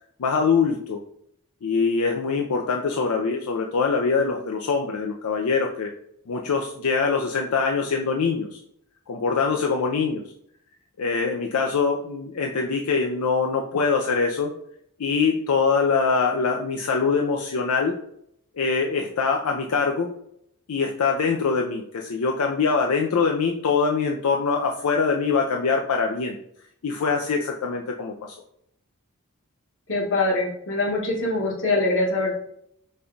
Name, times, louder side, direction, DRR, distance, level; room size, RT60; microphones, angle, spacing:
voice 1, 0.2-1.0 1.6-5.9 6.3-8.6 9.1-10.2 11.0-14.5 15.0-18.0 18.6-20.1 20.7-26.4 26.8-28.4, left 5 dB, 85° left, 1 dB, 0.5 m, -23 dB
voice 2, 29.9-32.3, left 2 dB, 60° left, -2 dB, 1.4 m, -23 dB
5.3 x 2.3 x 3.8 m, 0.72 s
head